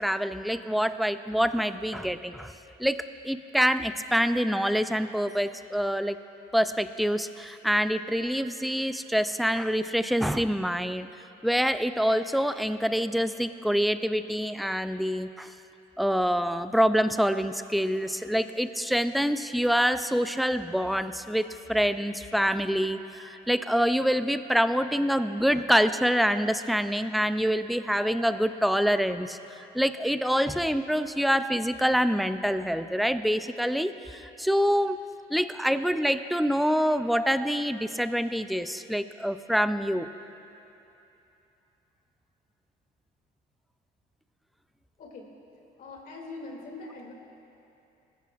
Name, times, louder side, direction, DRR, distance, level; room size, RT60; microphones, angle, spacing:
voice 1, 0.0-2.5 2.8-6.2 6.5-11.1 11.4-15.5 16.0-35.0 35.3-40.1, equal, ahead, 11 dB, 0.4 m, -26 dB
voice 2, 45.8-47.1, left 3 dB, 55° left, 0 dB, 2.6 m, -42 dB
20.0 x 14.5 x 2.5 m, 2.9 s
cardioid pair, 110°, 17 cm